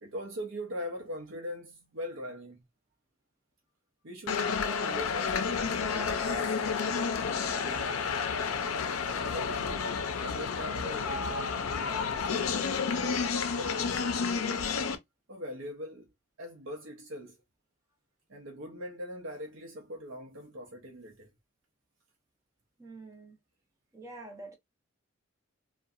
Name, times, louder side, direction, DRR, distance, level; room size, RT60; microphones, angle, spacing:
voice 1, 0.0-2.6 4.0-5.6 5.9-8.1 9.3-14.8 15.3-16.1 16.4-17.4 18.3-21.3, equal, 70° right, 0.7 m, -42 dB
sound 1, 4.3-15.0, left 5 dB, 90° left, 0.5 m, -31 dB
voice 2, 22.8-23.4 23.9-24.6, right 2 dB, 15° right, 0.7 m, -46 dB
2.6 x 2.2 x 2.4 m
head